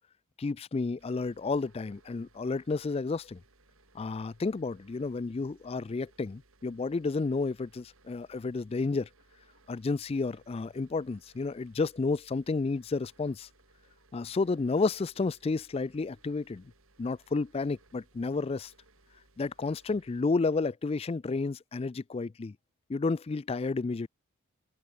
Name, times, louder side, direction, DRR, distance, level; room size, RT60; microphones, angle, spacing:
voice 1, 0.4-3.4 3.9-9.1 9.7-13.5 14.1-16.6 17.0-18.7 19.4-22.6 22.9-24.1, left 3 dB, 25° left, 0.3 m, -31 dB
sound 1, 1.0-20.2, right 2 dB, 70° right, 6.0 m, -64 dB
open air
head